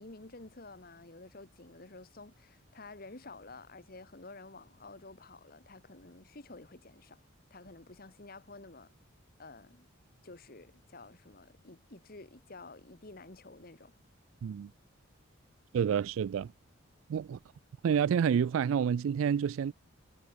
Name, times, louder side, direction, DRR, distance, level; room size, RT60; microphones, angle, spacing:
voice 1, 0.0-7.2 7.5-8.9 9.4-9.9 10.2-13.9, left 3 dB, 45° left, 1.6 m, -51 dB
voice 2, 15.7-16.5 17.1-17.4 17.8-19.7, right 7 dB, 80° right, 0.3 m, -28 dB
head